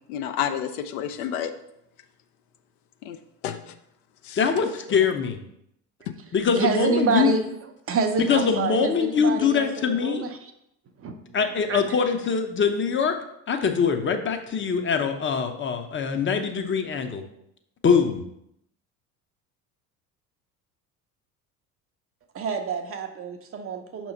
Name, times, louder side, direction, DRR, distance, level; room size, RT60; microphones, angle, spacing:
voice 1, 0.1-1.5 3.0-3.2 3.4-3.7 4.2-4.4, left 9 dB, 60° left, 8 dB, 0.6 m, -30 dB
voice 2, 4.4-5.4 6.3-7.3 8.2-10.3 11.3-13.2 13.5-17.2 17.8-18.2, left 6 dB, 25° left, 6 dB, 0.7 m, -23 dB
voice 3, 6.5-7.4 7.9-10.5 11.0-11.4 11.7-11.8 22.3-24.1, right 5 dB, 30° right, 5 dB, 0.6 m, -27 dB
6.2 x 3.0 x 5.4 m, 0.78 s
figure-of-eight pair, 65°, 49 cm